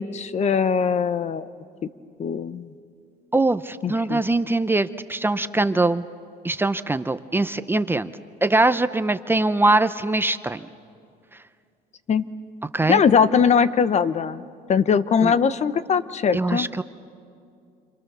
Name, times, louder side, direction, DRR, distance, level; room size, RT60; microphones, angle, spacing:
voice 1, 0.0-1.5 2.2-2.7 3.8-4.2 12.1-12.2 12.9-14.4 14.7-16.7, left 6 dB, 40° left, 14 dB, 0.9 m, -21 dB
voice 2, 3.3-6.0 6.4-8.1 8.4-10.6 12.7-13.0 15.2-15.3 16.3-16.8, right 2 dB, 15° right, 12 dB, 0.7 m, -22 dB
28.5 x 27.5 x 6.8 m, 2.4 s
cardioid pair, 110°, 17 cm